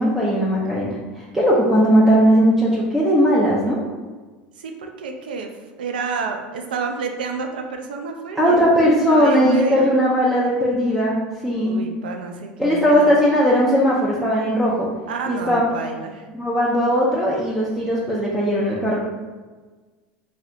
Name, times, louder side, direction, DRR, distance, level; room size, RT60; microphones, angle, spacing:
voice 1, 0.0-3.8 8.4-11.8 12.6-14.9 15.3-15.6 16.3-19.0, equal, 5° right, -6 dB, 0.6 m, -18 dB
voice 2, 4.6-5.5 5.8-8.8 9.1-9.9 11.6-13.2 15.1-16.3, right 5 dB, 90° right, 4 dB, 0.4 m, -29 dB
3.2 x 2.7 x 2.4 m, 1.3 s
hypercardioid pair, 95°, 5 cm